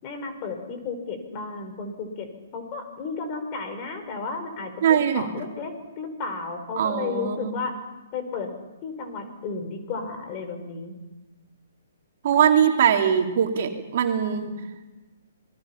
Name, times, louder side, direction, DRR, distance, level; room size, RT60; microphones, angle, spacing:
voice 1, 0.0-2.3 2.5-7.8 8.1-8.5 8.8-10.9, left 4 dB, 35° left, 6 dB, 4.7 m, -33 dB
voice 2, 4.8-5.3 6.7-7.6 12.2-14.5, right 8 dB, 50° right, 3 dB, 2.8 m, -21 dB
26.5 x 20.0 x 5.8 m, 1.2 s
hypercardioid pair, 130°, 0 cm